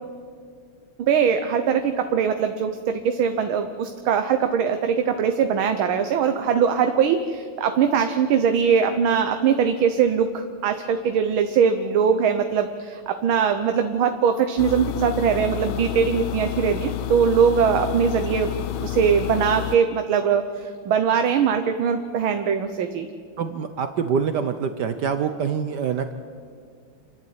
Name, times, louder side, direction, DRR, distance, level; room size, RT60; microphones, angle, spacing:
voice 1, 1.0-23.1, right 7 dB, 85° right, 7 dB, 1.7 m, -21 dB
sound 1, 14.6-19.8, left 14 dB, 80° left, 1.5 m, -29 dB
voice 2, 23.4-26.1, right 7 dB, 65° right, 9 dB, 1.3 m, -25 dB
29.0 x 11.5 x 8.7 m, 2.1 s
omnidirectional pair, 2.2 m